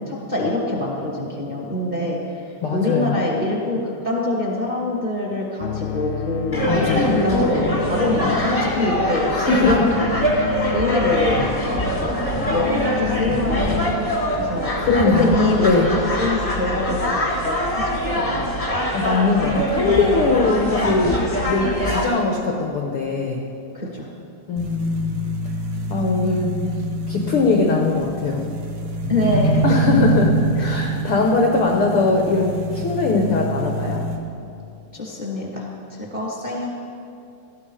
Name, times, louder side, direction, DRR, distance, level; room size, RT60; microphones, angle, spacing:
voice 1, 0.0-2.4 2.7-10.1 10.7-11.4 11.6-12.1 12.5-14.1 14.3-18.5 23.7-24.1 29.1-29.6 30.6-30.9 34.9-35.7 36.0-36.7, left 1 dB, 15° right, -3 dB, 1.6 m, -24 dB
voice 2, 2.6-3.2 6.7-7.0 9.3-9.8 14.8-15.9 18.9-23.4 24.5-25.2 25.9-26.5 27.1-28.4 29.6-34.0, left 3 dB, 70° left, 1 dB, 1.3 m, -21 dB
sound 1, 5.6-15.7, left 12 dB, 85° left, 2.3 m, -30 dB
sound 2, 6.5-22.0, equal, 20° left, 1.0 m, -23 dB
sound 3, 24.6-34.2, right 1 dB, 75° right, 3.0 m, -25 dB
17.5 x 13.5 x 5.0 m, 2.6 s
omnidirectional pair, 4.0 m